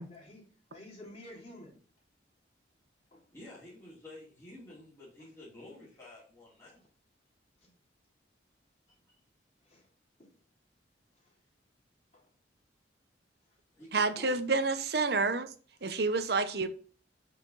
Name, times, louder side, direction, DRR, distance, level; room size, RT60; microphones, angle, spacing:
voice 1, 0.0-1.8 3.1-3.2 7.6-7.7 9.6-9.9 10.2-10.3 11.1-11.4 12.1-12.3, left 1 dB, 35° left, 3.0 m, -52 dB
voice 2, 3.3-6.8 13.8-14.4, left 1 dB, 15° left, 2.9 m, -50 dB
voice 3, 13.9-15.5 15.8-16.7, right 3 dB, 60° right, 0.8 m, -29 dB
7.8 x 5.8 x 4.0 m
head